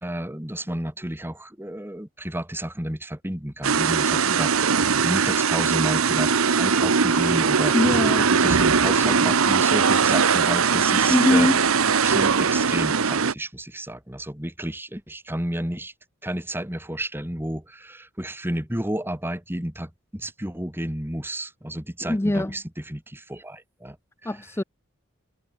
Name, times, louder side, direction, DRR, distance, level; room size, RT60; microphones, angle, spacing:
voice 1, 0.0-7.8 8.4-11.5 12.0-15.9 16.2-24.0 24.2-24.3, right 1 dB, 10° right, 2.2 m, -31 dB
sound 1, 3.6-13.3, right 5 dB, 85° right, 1.0 m, -20 dB
voice 2, 7.7-8.6 11.1-11.6 22.0-22.5 24.3-24.6, left 1 dB, 10° left, 0.5 m, -22 dB
head